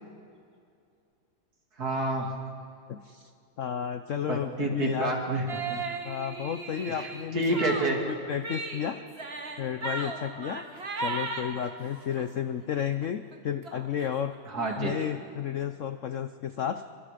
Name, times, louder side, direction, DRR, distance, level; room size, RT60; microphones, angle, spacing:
voice 1, 1.8-2.3 4.3-5.4 5.7-5.8 6.9-8.0 14.5-15.0, right 2 dB, 50° right, 1 dB, 3.2 m, -29 dB
voice 2, 2.9-3.3 3.6-5.1 6.0-7.7 8.1-9.0 9.6-10.6 11.0-14.3 14.8-16.8, left 9 dB, 60° left, 10 dB, 0.8 m, -32 dB
sound 1, 5.5-12.3 12.7-13.1 13.3-13.4 13.6-15.1, right 3 dB, 35° right, 1.7 m, -37 dB
28.0 x 24.0 x 5.1 m, 2.4 s
omnidirectional pair, 2.1 m